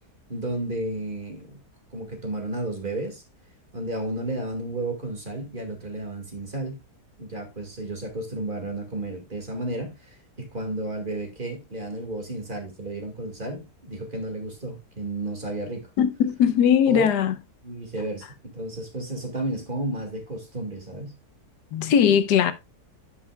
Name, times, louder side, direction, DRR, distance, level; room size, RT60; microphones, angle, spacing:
voice 1, 0.3-1.6 1.9-3.2 3.7-6.8 7.2-15.9 16.9-17.1 17.6-21.1, right 2 dB, 30° right, 2.1 m, -32 dB
voice 2, 16.0-17.3 21.7-22.5, left 8 dB, 85° left, 1.3 m, -19 dB
9.8 x 8.2 x 2.3 m
omnidirectional pair, 1.8 m